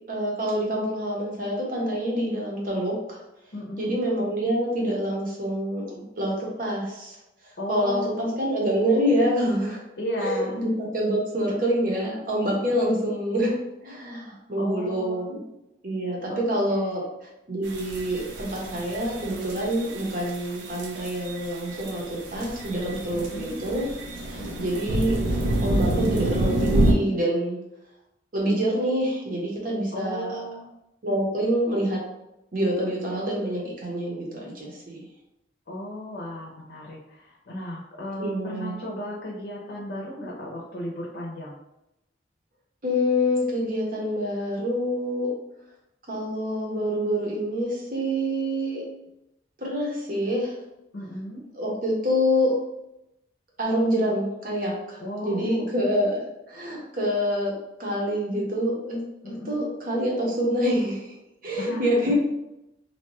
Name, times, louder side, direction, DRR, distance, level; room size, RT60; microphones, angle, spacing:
voice 1, 0.1-3.2 3.8-7.2 7.7-9.8 10.2-15.4 15.8-17.0 17.5-23.9 24.3-25.2 25.6-27.6 28.3-30.4 31.0-32.0 32.5-35.0 38.2-38.8 42.8-45.3 46.1-48.8 49.6-50.6 51.5-52.5 53.6-56.2 56.5-57.5 57.8-61.1 61.4-62.1, equal, 45° right, -2 dB, 0.8 m, -26 dB
voice 2, 3.5-3.9 7.6-8.4 10.0-10.6 12.7-13.1 14.6-15.3 16.3-17.1 23.1-23.6 24.4-24.8 29.9-30.6 35.7-41.6 50.9-51.4 55.0-55.8 59.2-59.7 61.6-62.1, equal, 60° left, -4 dB, 0.6 m, -35 dB
sound 1, 17.6-26.9, right 1 dB, 75° right, 0.5 m, -28 dB
2.6 x 2.2 x 2.9 m, 0.89 s
head